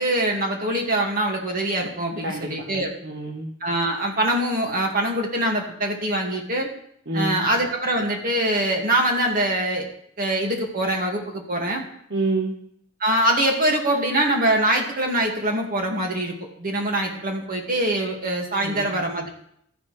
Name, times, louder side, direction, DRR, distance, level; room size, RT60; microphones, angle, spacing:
voice 1, 0.0-2.9 3.6-6.7 7.1-9.9 10.2-11.8 13.0-19.3, right 1 dB, 45° right, 1 dB, 2.1 m, -23 dB
voice 2, 2.2-3.5 7.1-7.5 12.1-12.5 18.6-18.9, right 2 dB, 60° right, 0 dB, 1.2 m, -28 dB
13.5 x 10.0 x 3.3 m, 0.70 s
head